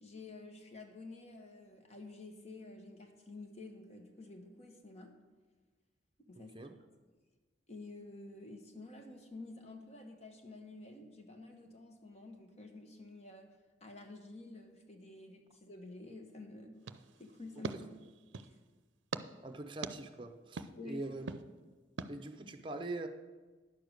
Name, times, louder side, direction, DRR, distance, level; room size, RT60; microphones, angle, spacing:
voice 1, 0.0-5.1 6.2-6.5 7.7-16.8 17.2-17.8 18.1-18.6 20.8-21.1, left 2 dB, 35° left, 4 dB, 1.1 m, -50 dB
voice 2, 6.4-6.7 19.4-21.4 22.1-23.1, right 2 dB, 25° right, 6 dB, 0.7 m, -43 dB
sound 1, 16.8-18.6 19.1-19.2 19.8-19.9 20.6-20.7 21.3-21.4 22.0-22.1, right 4 dB, 90° right, 0.5 m, -42 dB
10.5 x 6.7 x 6.5 m, 1.3 s
head